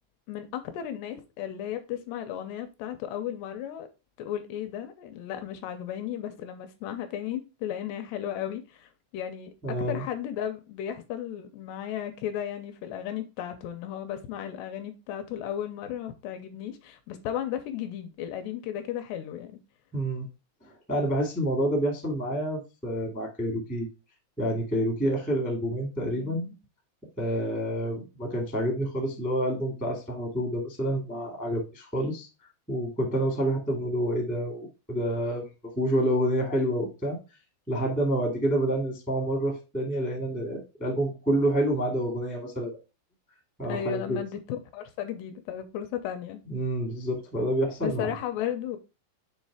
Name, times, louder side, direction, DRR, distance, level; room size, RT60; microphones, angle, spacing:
voice 1, 0.3-3.9 4.2-19.6 26.0-26.6 43.7-46.4 47.8-48.8, left 10 dB, 80° left, 2.6 m, -35 dB
voice 2, 9.6-10.0 19.9-20.2 20.6-23.9 24.4-26.5 27.2-32.3 32.7-35.5 35.7-37.2 37.7-42.7 43.6-44.2 46.5-48.1, right 1 dB, 10° left, 0.5 m, -28 dB
6.9 x 3.2 x 4.8 m
omnidirectional pair, 5.1 m